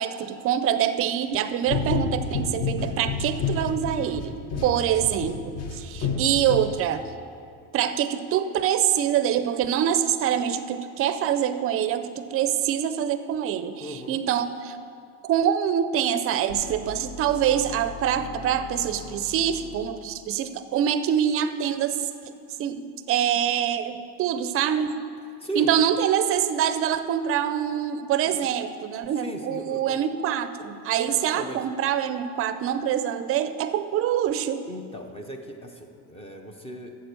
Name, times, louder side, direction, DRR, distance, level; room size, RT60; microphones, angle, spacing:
voice 1, 0.0-4.4 4.6-7.0 7.7-14.8 15.2-22.0 22.6-25.0 25.6-34.6, right 9 dB, 35° right, 11 dB, 0.5 m, -25 dB
sound 1, 1.7-7.2, left 5 dB, 45° left, 0.9 m, -30 dB
voice 2, 13.8-14.2 25.4-25.7 28.2-28.4 29.2-30.0 31.1-31.6 34.7-37.0, right 1 dB, 15° left, 4 dB, 0.5 m, -37 dB
sound 2, 16.5-20.5, left 5 dB, 70° left, 1.0 m, -41 dB
8.9 x 7.6 x 6.7 m, 2.4 s
cardioid pair, 160°, 38 cm